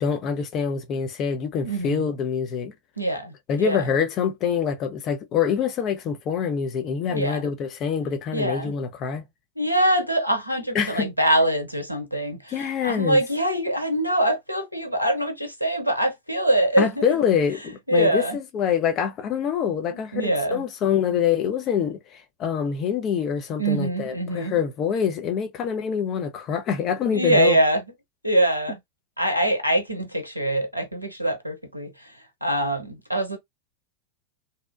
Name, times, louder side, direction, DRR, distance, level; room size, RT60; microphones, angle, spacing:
voice 1, 0.0-2.7 3.5-9.3 10.7-11.1 12.5-13.2 16.8-27.6, left 7 dB, 35° left, 0.6 m, -25 dB
voice 2, 1.6-2.1 3.0-3.8 7.1-7.5 8.3-8.7 9.6-17.0 17.9-18.4 19.9-20.6 23.6-24.5 27.1-27.8 28.2-28.8 29.2-31.9 32.4-33.4, right 1 dB, 90° right, 0.6 m, -24 dB
2.7 x 2.1 x 2.4 m
figure-of-eight pair, 90°, 0 cm